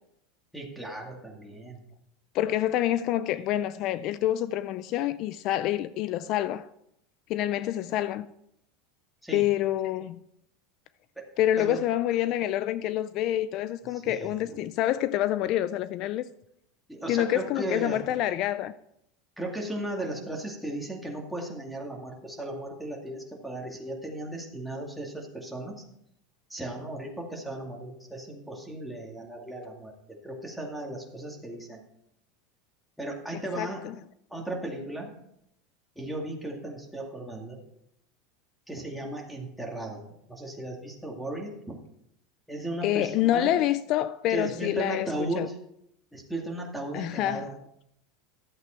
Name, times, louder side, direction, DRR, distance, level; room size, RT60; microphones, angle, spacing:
voice 1, 0.5-1.8 9.2-9.5 11.2-11.3 11.6-11.8 13.9-14.7 16.9-18.1 19.4-25.8 26.5-29.9 30.2-31.8 33.0-33.9 34.3-35.1 36.0-37.6 38.7-40.0 40.3-41.8 42.5-43.5 44.3-45.6 46.1-47.6, right 1 dB, ahead, 2.3 m, -36 dB
voice 2, 2.3-6.7 7.3-8.3 9.3-10.2 11.4-16.2 17.1-18.7 33.6-33.9 42.8-45.1 45.4-45.5 46.9-47.5, left 13 dB, 50° left, 0.4 m, -27 dB
12.0 x 7.9 x 4.4 m
supercardioid pair, 125°, 0 cm